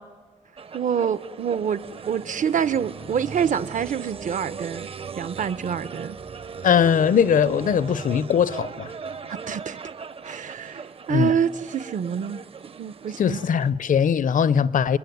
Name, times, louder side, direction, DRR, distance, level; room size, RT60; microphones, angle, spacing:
sound 1, 0.6-13.7, right 6 dB, 45° right, 0.7 m, -38 dB
voice 1, 0.7-4.9 5.1-6.2 9.3-9.8 10.2-12.4 12.8-13.4, right 7 dB, 70° right, 1.0 m, -26 dB
voice 2, 6.6-8.9 11.1-11.3 13.2-15.0, left 7 dB, 75° left, 0.8 m, -20 dB
29.0 x 21.5 x 9.5 m
wide cardioid pair, 170°, 14 cm